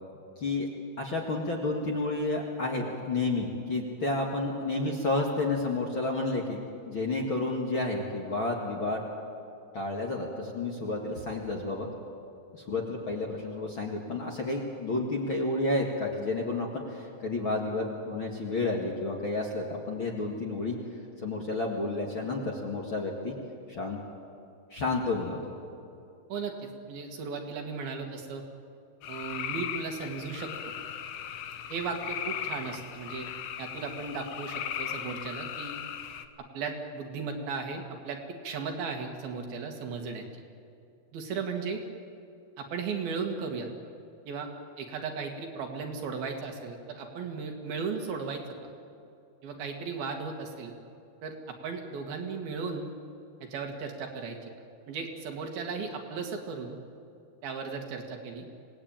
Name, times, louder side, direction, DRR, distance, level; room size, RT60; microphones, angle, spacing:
voice 1, 0.4-0.7 1.0-9.0 9.7-11.9 12.5-20.8 21.2-23.4 23.7-24.0 24.7-25.5, left 2 dB, 40° left, -1 dB, 2.0 m, -31 dB
voice 2, 26.3-28.4 29.1-30.7 31.7-33.3 33.6-35.8 36.5-40.3 41.1-41.8 42.6-43.7 44.3-44.5 44.8-48.4 49.4-50.7 51.2-52.9 53.4-54.4 54.9-56.8 57.4-58.5, right 5 dB, 70° right, 3 dB, 3.6 m, -36 dB
sound 1, 29.0-36.3, left 9 dB, 85° left, 1.5 m, -38 dB
26.5 x 18.5 x 9.0 m, 2.6 s
omnidirectional pair, 4.6 m